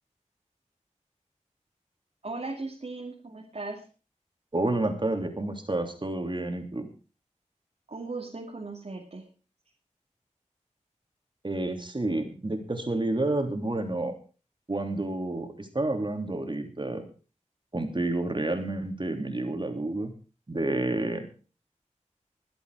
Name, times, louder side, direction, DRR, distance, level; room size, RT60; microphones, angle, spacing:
voice 1, 2.2-3.9 7.9-9.3, right 3 dB, 60° right, 0 dB, 2.7 m, -37 dB
voice 2, 4.5-6.9 11.4-14.1 14.7-17.0 17.7-20.1 20.5-21.3, right 2 dB, 40° right, 5 dB, 3.1 m, -29 dB
22.0 x 8.0 x 4.9 m, 0.36 s
wide cardioid pair, 60°, 13 cm